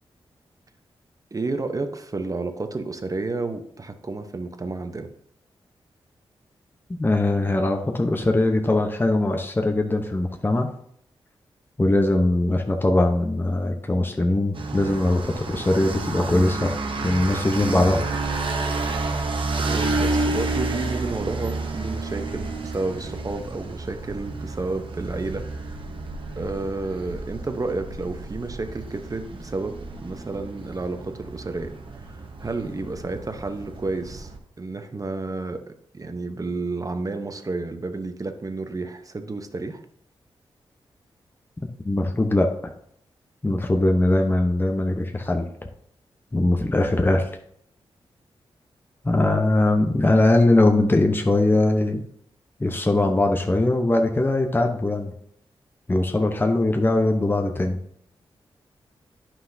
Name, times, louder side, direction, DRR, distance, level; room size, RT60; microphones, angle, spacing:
voice 1, 1.3-5.1 19.6-25.4 26.3-34.3 34.6-39.8, right 3 dB, 35° right, 8 dB, 0.9 m, -31 dB
voice 2, 7.0-10.7 11.8-16.7 17.0-18.1 41.8-42.7 43.4-45.5 46.3-47.3 49.0-52.0 52.6-55.1 55.9-57.8, left 2 dB, 20° left, 4 dB, 0.9 m, -21 dB
sound 1, 14.5-34.4, right 3 dB, 60° right, 1.1 m, -30 dB
9.6 x 5.8 x 2.7 m, 0.68 s
cardioid pair, 50°, 10 cm